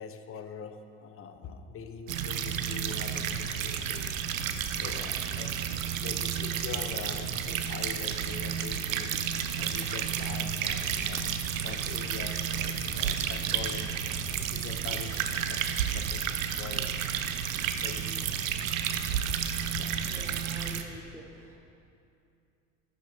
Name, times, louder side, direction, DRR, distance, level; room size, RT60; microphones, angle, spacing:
voice 1, 0.0-4.1 4.7-5.7 6.0-14.0 14.5-17.0 17.4-17.5 17.7-18.3 18.7-18.9 19.7-19.9, left 6 dB, 35° left, 8 dB, 0.7 m, -43 dB
sound 1, 2.1-20.8, right 8 dB, 80° right, 0.6 m, -31 dB
sound 2, 2.3-15.9, right 3 dB, 45° right, 1.4 m, -49 dB
voice 2, 20.0-21.5, right 1 dB, 5° right, -2 dB, 0.9 m, -47 dB
12.0 x 8.8 x 2.7 m, 2.6 s
hypercardioid pair, 65°, 40 cm